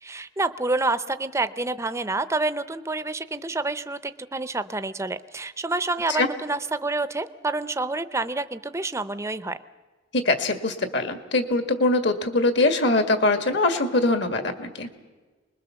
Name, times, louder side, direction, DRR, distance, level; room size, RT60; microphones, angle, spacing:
voice 1, 0.0-9.6, right 2 dB, 15° right, 13 dB, 0.6 m, -28 dB
voice 2, 10.1-14.9, left 2 dB, 60° left, 8 dB, 2.0 m, -22 dB
25.0 x 21.0 x 7.0 m, 1.3 s
head